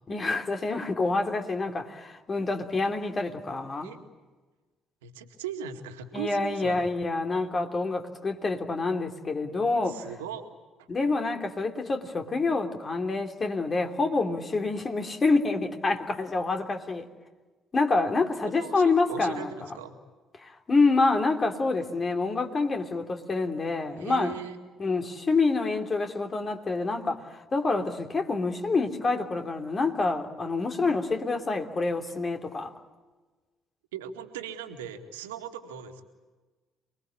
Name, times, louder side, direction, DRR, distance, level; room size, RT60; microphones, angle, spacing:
voice 1, 0.1-3.9 6.1-10.0 10.9-17.0 17.7-19.5 20.4-24.4 24.8-32.7, left 3 dB, 35° left, 3.1 m, -27 dB
voice 2, 5.0-6.9 9.7-10.4 10.8-10.9 18.5-20.0 23.9-24.6 33.9-36.0, right 8 dB, 80° right, 2.2 m, -39 dB
28.0 x 21.5 x 8.6 m
hypercardioid pair, 50°, 0 cm